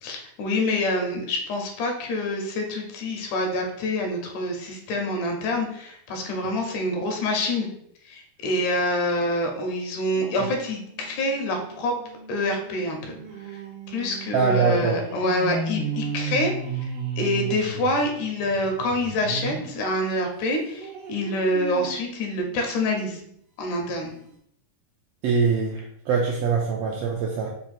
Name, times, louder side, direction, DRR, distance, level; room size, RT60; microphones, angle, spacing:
voice 1, 0.0-7.7 8.1-11.9 12.3-13.2 13.5-13.6 13.9-16.5 17.2-23.2 23.6-24.1, left 1 dB, 85° left, 3 dB, 2.3 m, -26 dB
sound 1, 10.2-19.8 20.2-23.3 23.8-23.9 24.1-24.2, right 4 dB, 65° right, 1.4 m, -35 dB
voice 2, 14.3-15.0 25.2-27.5, right 5 dB, 85° right, -1 dB, 1.4 m, -23 dB
5.1 x 2.3 x 4.2 m, 0.71 s
omnidirectional pair, 3.5 m